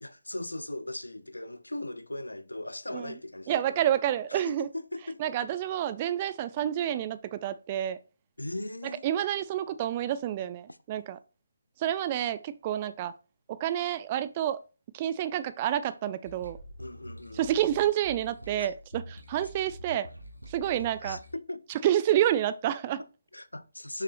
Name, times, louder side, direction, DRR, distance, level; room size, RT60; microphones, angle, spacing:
voice 1, 0.0-3.9 4.3-5.5 8.4-9.1 10.7-10.8 16.8-17.6 18.6-18.7 21.0-21.6 23.0-24.0, left 1 dB, 80° left, 0.7 m, -39 dB
voice 2, 3.5-4.7 5.2-8.0 9.0-11.2 11.8-13.1 13.5-14.6 14.9-16.6 17.3-20.1 20.5-21.2 21.8-23.0, right 11 dB, 25° right, 0.4 m, -29 dB
sound 1, 16.2-21.4, equal, 90° right, 1.7 m, -46 dB
6.7 x 5.8 x 2.5 m
figure-of-eight pair, 145°, 0 cm